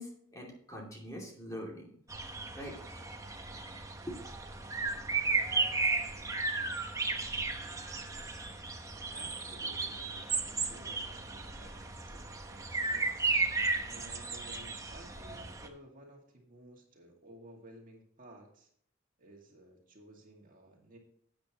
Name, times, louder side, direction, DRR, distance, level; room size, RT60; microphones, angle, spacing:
voice 1, 0.0-1.9 2.5-2.8 4.0-4.2, equal, 15° left, -2 dB, 2.6 m, -43 dB
sound 1, 2.1-15.7, right 3 dB, 15° right, 1.0 m, -34 dB
voice 2, 9.1-13.3 13.9-18.7 19.2-21.0, right 1 dB, 40° right, 0 dB, 2.2 m, -55 dB
12.0 x 8.8 x 3.0 m, 0.64 s
head